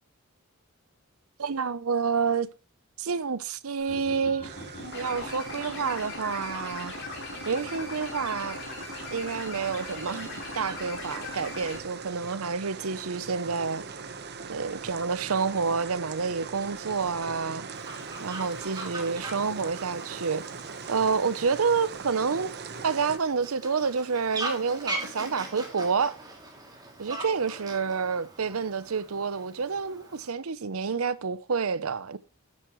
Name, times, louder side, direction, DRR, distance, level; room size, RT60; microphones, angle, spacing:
voice 1, 1.4-2.5 3.0-4.6 4.9-6.9 7.4-8.6 9.1-13.9 14.5-17.7 18.2-20.4 20.9-22.5 22.8-26.2 27.0-32.2, right 5 dB, 80° right, 0.7 m, -29 dB
sound 1, 3.8-11.8, left 3 dB, 55° left, 4.1 m, -39 dB
sound 2, 4.4-23.2, right 5 dB, 50° right, 1.1 m, -41 dB
Fowl, 17.7-30.3, right 2 dB, 20° right, 2.7 m, -41 dB
11.5 x 9.8 x 3.1 m
head